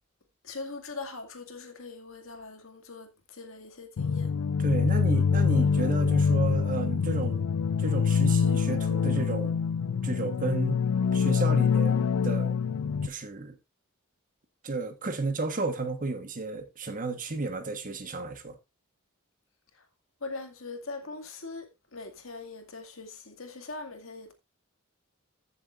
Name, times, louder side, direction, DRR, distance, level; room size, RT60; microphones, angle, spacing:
voice 1, 0.5-3.1 3.4-4.3 20.2-21.7 21.9-24.3, left 3 dB, 70° left, 2.2 m, -41 dB
sound 1, 4.0-13.1, left 6 dB, 90° left, 0.4 m, -25 dB
voice 2, 4.6-7.4 7.8-9.6 10.0-10.8 11.1-12.6 13.0-13.6 14.6-18.6, right 3 dB, 40° right, 1.3 m, -32 dB
15.5 x 7.2 x 2.5 m
head